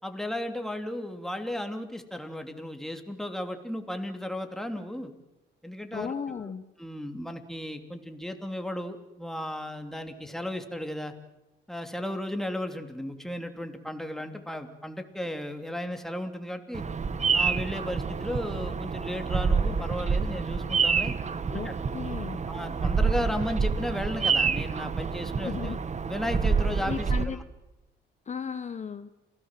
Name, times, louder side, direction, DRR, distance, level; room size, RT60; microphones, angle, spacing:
voice 1, 0.0-5.1 5.6-6.5 6.8-11.1 11.7-16.8 17.3-21.2 21.6-21.7 22.5-25.8 26.0-27.4, left 1 dB, ahead, 6 dB, 3.1 m, -35 dB
voice 2, 5.9-6.6 21.5-22.4 25.4-25.8 26.9-27.4 28.3-29.1, left 6 dB, 35° left, 11 dB, 1.0 m, -35 dB
Bird vocalization bird call bird song, 16.7-27.2, right 5 dB, 35° right, 1.3 m, -27 dB
28.0 x 18.0 x 7.6 m, 0.97 s
cardioid pair, 90°, 20 cm